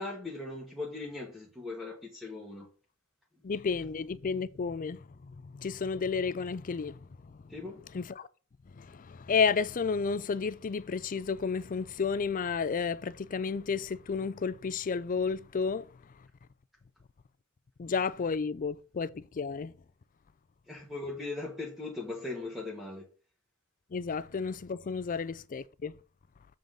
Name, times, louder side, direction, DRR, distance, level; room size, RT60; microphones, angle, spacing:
voice 1, 0.0-2.7 3.4-3.5 7.5-7.8 20.7-23.0, left 2 dB, ahead, 1.4 m, -39 dB
voice 2, 3.4-7.5 7.9-8.3 8.7-16.3 17.8-19.8 23.9-26.0, left 5 dB, 35° left, 0.4 m, -32 dB
7.3 x 3.8 x 6.3 m
head